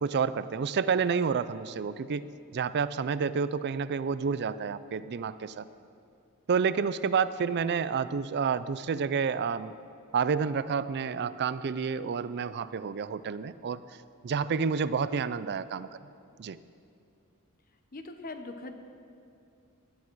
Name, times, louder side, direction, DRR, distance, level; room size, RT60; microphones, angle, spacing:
voice 1, 0.0-2.3 2.5-5.7 6.5-9.7 10.1-13.8 14.2-15.9 16.4-16.6, right 6 dB, 50° right, 15 dB, 0.4 m, -29 dB
voice 2, 17.9-18.7, left 2 dB, 40° left, 7 dB, 0.9 m, -40 dB
18.0 x 10.5 x 4.7 m, 2.6 s
head